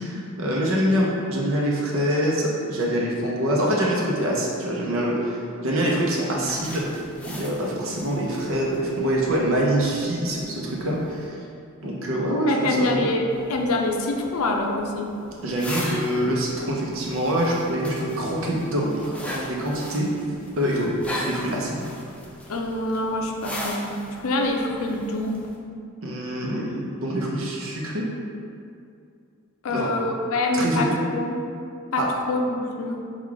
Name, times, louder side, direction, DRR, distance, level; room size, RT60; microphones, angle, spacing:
voice 1, 0.0-6.8 7.3-11.4 11.8-13.0 15.4-20.1 20.6-20.9 21.2-21.8 26.0-28.0 29.7-29.9 30.5-31.0 32.0-32.1, right 1 dB, 70° right, -3 dB, 0.7 m, -25 dB
sound 1, 6.4-11.3 13.3-25.6, left 1 dB, 5° left, 0.4 m, -39 dB
voice 2, 12.5-15.2 22.5-24.0 24.2-25.4 29.6-30.9 31.1-31.4 31.9-33.0, left 2 dB, 80° left, 1 dB, 0.5 m, -25 dB
3.8 x 2.4 x 4.6 m, 2.5 s
head